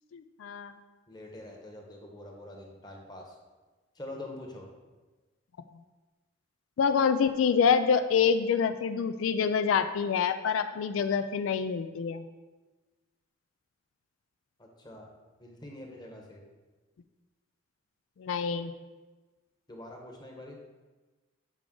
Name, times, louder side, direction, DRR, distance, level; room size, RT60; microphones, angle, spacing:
voice 1, 0.1-0.7 6.8-12.2 18.2-18.7, left 6 dB, 90° left, 10 dB, 0.4 m, -26 dB
voice 2, 1.1-3.3 3.9-4.7 14.6-15.1 15.4-16.4 19.7-20.6, left 1 dB, 20° left, 0 dB, 1.0 m, -45 dB
7.4 x 5.0 x 3.7 m, 1.2 s
head